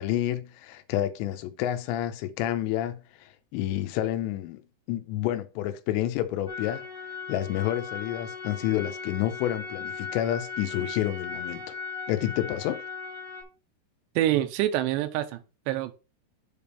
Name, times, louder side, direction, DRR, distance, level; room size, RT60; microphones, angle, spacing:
voice 1, 0.0-4.6 4.9-6.9 7.3-11.7 12.1-12.8, left 12 dB, 85° left, 3.0 m, -29 dB
sound 1, 6.5-13.4, left 5 dB, 20° left, 0.9 m, -38 dB
voice 2, 14.2-15.9, right 13 dB, 90° right, 2.8 m, -26 dB
7.7 x 3.5 x 5.5 m
omnidirectional pair, 5.0 m